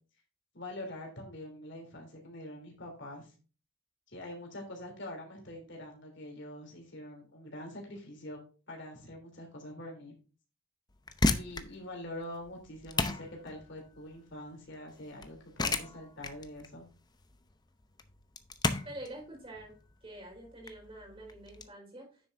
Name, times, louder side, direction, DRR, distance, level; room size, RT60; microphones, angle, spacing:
voice 1, 0.5-3.3 4.1-8.4 8.7-10.1 11.2-16.9, left 1 dB, 55° left, 1 dB, 3.2 m, -45 dB
sound 1, 10.9-21.7, left 3 dB, 20° left, 0.7 m, -35 dB
voice 2, 18.8-19.7 20.0-22.3, right 1 dB, 25° right, 0 dB, 4.5 m, -46 dB
9.8 x 7.7 x 2.6 m, 0.35 s
head